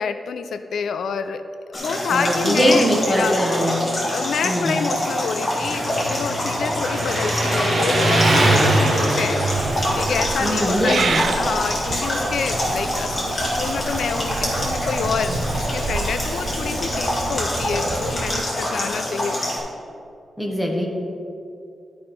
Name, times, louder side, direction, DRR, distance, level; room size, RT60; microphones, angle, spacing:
voice 1, 0.0-1.4 1.7-2.8 3.2-3.4 4.1-11.0 11.3-19.4, left 6 dB, 85° left, 9 dB, 0.4 m, -28 dB
sound 1, 1.7-19.6, left 1 dB, 25° left, 2.0 m, -25 dB
voice 2, 2.1-3.8 4.4-4.8 10.4-11.2 20.4-20.9, equal, ahead, -1 dB, 1.2 m, -21 dB
Motorcycle, 5.6-18.2, right 1 dB, 40° right, 1.2 m, -25 dB
Purr / Meow, 9.5-18.4, right 4 dB, 60° right, 0.4 m, -30 dB
12.5 x 5.2 x 4.3 m, 2.5 s
wide cardioid pair, 165°, 0 cm